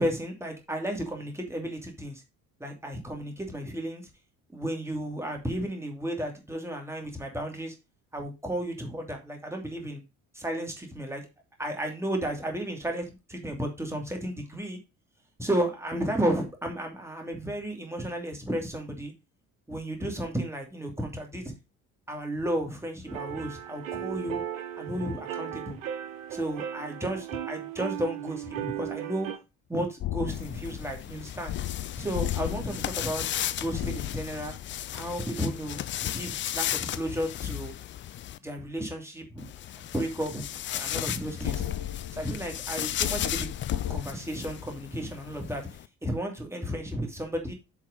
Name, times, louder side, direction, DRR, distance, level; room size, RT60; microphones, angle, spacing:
voice 1, 0.0-2.2 2.6-4.0 4.5-7.7 8.1-10.0 10.3-11.2 11.6-14.8 15.4-19.1 19.7-21.5 22.1-24.4 24.8-25.8 26.3-29.3 29.7-31.5 32.0-33.2 33.5-34.6 34.9-37.7 38.4-39.5 39.8-40.4 40.7-41.6 42.1-43.5 43.9-45.6 46.0-47.5, right 1 dB, 5° right, 2 dB, 2.7 m, -33 dB
sound 1, 23.1-29.4, right 10 dB, 70° right, 1.0 m, -36 dB
sound 2, 30.0-35.6 41.4-44.0, left 12 dB, 45° left, 1.6 m, -35 dB
sound 3, 30.3-38.4 39.4-45.9, left 12 dB, 30° left, 0.5 m, -35 dB
7.4 x 4.6 x 5.2 m, 0.26 s
figure-of-eight pair, 50°, 41 cm